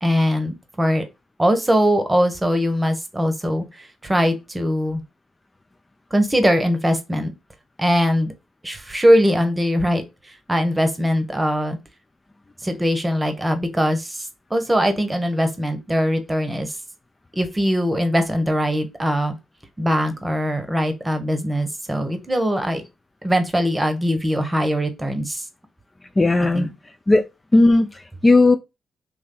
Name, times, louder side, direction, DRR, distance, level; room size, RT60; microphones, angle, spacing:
voice 1, 0.0-1.0 1.4-5.0 6.1-7.3 7.8-8.3 8.6-11.8 12.6-16.8 17.3-19.4 19.8-22.8 23.2-25.4 26.5-26.7, equal, 15° right, 1.1 m, -21 dB
voice 2, 26.2-26.7 27.1-27.2 27.5-28.6, left 2 dB, 25° left, 0.4 m, -16 dB
3.0 x 2.6 x 3.8 m
supercardioid pair, 50°, 0 cm